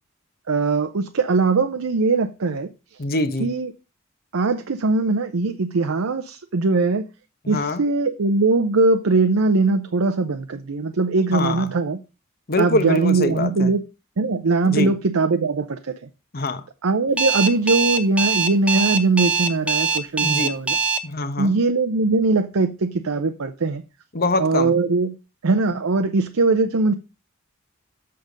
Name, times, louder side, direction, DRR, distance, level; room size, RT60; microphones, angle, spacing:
voice 1, 0.5-2.7 3.4-3.7 4.3-7.0 7.5-12.0 12.6-13.8 14.2-15.9 16.8-20.8 21.4-23.8 24.4-25.2 25.4-26.9, right 3 dB, 75° right, 0.7 m, -21 dB
voice 2, 3.0-3.5 7.4-7.8 11.3-11.7 12.5-13.7 14.6-14.9 16.3-16.6 20.2-20.6 21.0-21.5 24.1-24.7, left 2 dB, 45° left, 1.0 m, -24 dB
Alarm, 17.2-21.0, right 5 dB, 5° right, 0.8 m, -21 dB
7.6 x 6.7 x 5.1 m
head